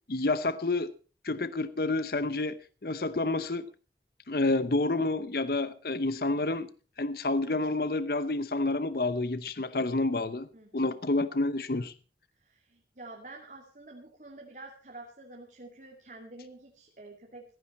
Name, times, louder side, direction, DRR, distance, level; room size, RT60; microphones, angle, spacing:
voice 1, 0.1-0.9 1.2-3.7 4.3-6.7 7.0-10.5 10.7-11.9, left 2 dB, 55° left, 0.8 m, -29 dB
voice 2, 10.5-11.0 12.4-17.4, right 2 dB, 45° right, 2.4 m, -48 dB
15.5 x 15.0 x 4.2 m
head